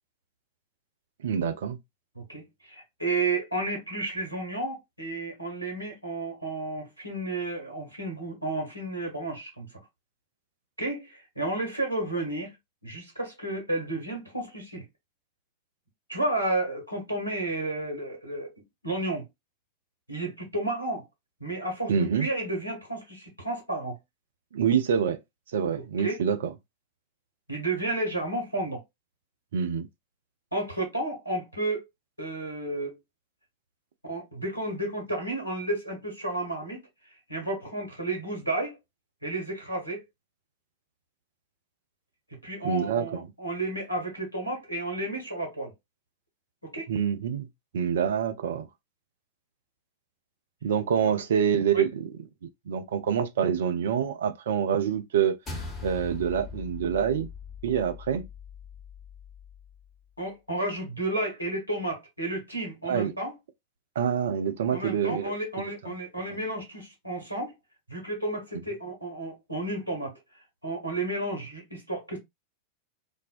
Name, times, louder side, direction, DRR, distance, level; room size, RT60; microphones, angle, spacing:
voice 1, 1.2-1.8 21.9-22.3 24.5-25.2 25.5-26.5 29.5-29.9 42.6-43.3 46.9-47.5 47.7-48.7 50.6-52.1 52.4-55.4 55.8-57.3 57.6-58.3 62.8-63.1 64.0-65.3 65.8-65.9, right 8 dB, 60° right, 0.4 m, -26 dB
voice 2, 2.1-9.7 10.8-12.5 12.8-14.9 16.1-19.3 20.1-21.0 21.4-24.0 26.0-26.2 27.5-28.8 30.5-31.9 32.2-33.0 34.1-36.9 37.3-38.8 39.2-40.0 42.4-45.7 46.6-46.9 51.7-51.8 60.2-63.3 64.7-67.6 67.9-70.1 70.6-72.2, right 2 dB, 90° left, 1.1 m, -32 dB
sound 1, 55.5-60.0, left 4 dB, 20° left, 0.9 m, -41 dB
2.4 x 2.1 x 2.4 m
figure-of-eight pair, 90°, 0 cm